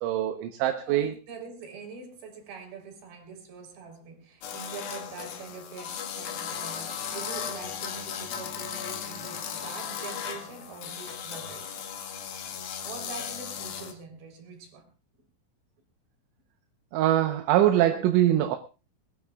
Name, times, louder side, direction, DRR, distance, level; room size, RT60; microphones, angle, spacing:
voice 1, 0.0-1.1 16.9-18.6, right 12 dB, 75° right, 6 dB, 3.2 m, -23 dB
voice 2, 0.9-11.9 12.8-14.9, right 5 dB, 60° right, 3 dB, 5.6 m, -44 dB
sound 1, 4.4-14.0, left 8 dB, 60° left, 2.9 m, -36 dB
21.5 x 21.0 x 2.4 m, 0.32 s
omnidirectional pair, 5.8 m